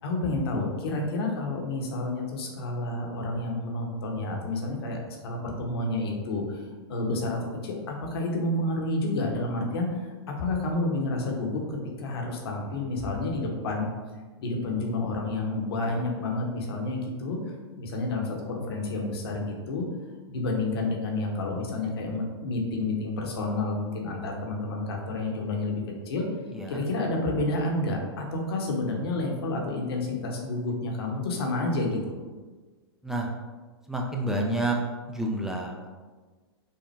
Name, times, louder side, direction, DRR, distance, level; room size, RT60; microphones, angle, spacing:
voice 1, 0.0-6.6 6.9-10.1 10.4-13.9 14.4-17.4 17.7-19.8 20.3-26.3 26.7-32.0, left 2 dB, 65° left, 1 dB, 1.0 m, -30 dB
voice 2, 26.5-26.8 33.0-33.3 33.9-34.8 35.1-35.9, right 1 dB, 5° right, -1 dB, 0.4 m, -29 dB
5.6 x 2.1 x 3.2 m, 1.4 s
hypercardioid pair, 115°, 14 cm